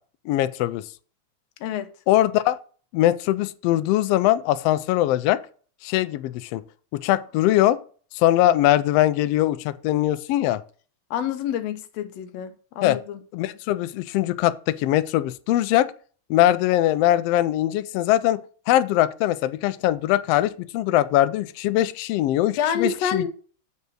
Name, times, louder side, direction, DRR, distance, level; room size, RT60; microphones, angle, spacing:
voice 1, 0.3-0.8 2.1-2.6 2.9-5.4 5.8-6.6 6.9-7.8 8.1-10.6 12.8-13.0 13.3-15.9 16.3-18.4 18.7-23.2, left 14 dB, 85° left, 1.4 m, -21 dB
voice 2, 1.6-1.9 11.1-13.2 22.6-23.3, left 8 dB, 70° left, 1.9 m, -27 dB
7.9 x 5.5 x 6.1 m
omnidirectional pair, 3.3 m